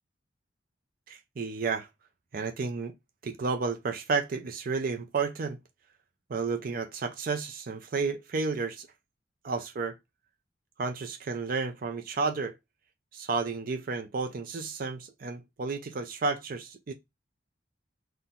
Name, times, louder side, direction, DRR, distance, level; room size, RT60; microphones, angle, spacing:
voice 1, 1.1-1.9 2.3-2.9 3.2-5.6 6.3-8.9 9.4-9.9 10.8-12.5 13.1-16.9, right 4 dB, 50° right, 0.5 m, -32 dB
4.2 x 2.2 x 3.7 m
head